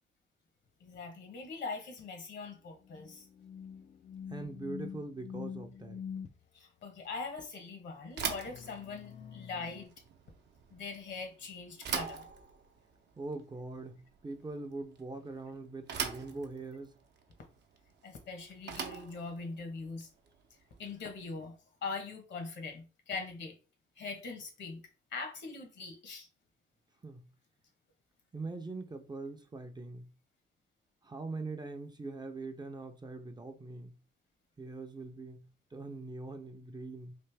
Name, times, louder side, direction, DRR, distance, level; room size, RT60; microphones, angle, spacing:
voice 1, 0.8-3.3 6.5-9.9 10.7-12.3 18.0-20.1 20.8-21.5 21.8-23.6 24.0-24.8 25.1-26.3, left 4 dB, 65° left, 1.1 m, -42 dB
sound 1, 2.8-6.3 8.5-9.9, left 7 dB, 35° left, 0.4 m, -45 dB
voice 2, 4.3-6.0 13.2-17.0 27.0-27.3 28.3-30.1 31.0-34.0 34.6-35.5 35.7-37.2, right 3 dB, 20° right, 0.5 m, -42 dB
Bicycle / Thump thud, 8.1-21.2, right 6 dB, 60° right, 0.7 m, -43 dB
3.3 x 2.5 x 3.3 m
cardioid pair, 90°, 20 cm